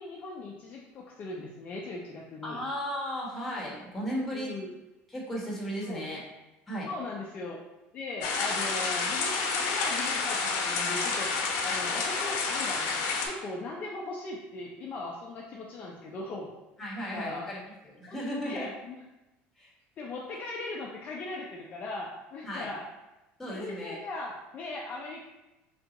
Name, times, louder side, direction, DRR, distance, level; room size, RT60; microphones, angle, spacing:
voice 1, 0.0-2.6 4.3-4.7 5.8-6.0 6.9-7.6 7.9-16.5 17.0-17.4 18.1-19.0 20.0-22.8 23.5-25.2, left 2 dB, 35° left, -2 dB, 0.5 m, -39 dB
voice 2, 2.4-4.5 5.1-6.2 6.7-6.9 16.8-17.6 17.8-18.7 19.6-19.7 22.4-22.7 23.4-24.0, equal, 5° left, -5 dB, 1.1 m, -35 dB
sound 1, 8.2-13.3, left 4 dB, 70° left, 0.7 m, -29 dB
3.4 x 2.7 x 3.9 m, 1.0 s
cardioid pair, 145°, 5 cm